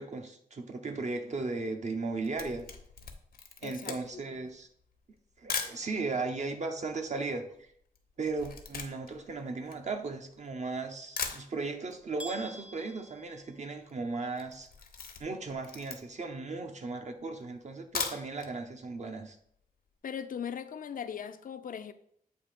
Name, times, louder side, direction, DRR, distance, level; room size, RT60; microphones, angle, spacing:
voice 1, 0.0-2.7 3.6-4.7 5.4-7.7 8.2-14.7 15.2-19.4, right 3 dB, 50° right, 0.8 m, -36 dB
Camera, 2.0-5.8 6.5-6.6 6.8-10.5 10.9-11.0 11.2-12.0 12.3-12.4 12.7-12.8 12.9-13.4 13.7-13.9 14.3-16.3 16.8-16.9 17.7-18.5 18.9-19.0 19.3-19.4, left 5 dB, 90° left, 0.8 m, -39 dB
voice 2, 3.6-4.2 20.0-21.9, left 8 dB, 65° left, 0.4 m, -39 dB
sound 1, 12.2-14.2, right 1 dB, 10° right, 0.5 m, -47 dB
8.1 x 2.7 x 5.1 m
wide cardioid pair, 120°, 15 cm